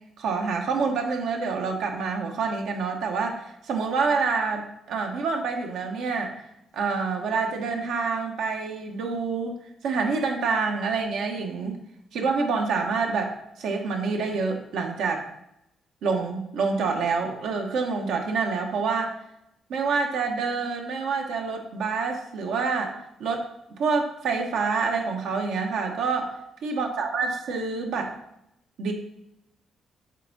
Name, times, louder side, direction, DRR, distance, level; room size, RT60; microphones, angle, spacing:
voice 1, 0.2-6.3 6.7-11.8 12.1-15.3 16.0-19.1 19.7-23.5 23.8-26.3 26.6-28.1 28.8-28.9, right 4 dB, 80° right, 2 dB, 1.1 m, -27 dB
8.0 x 3.5 x 4.0 m, 0.81 s
cardioid pair, 80°, 0 cm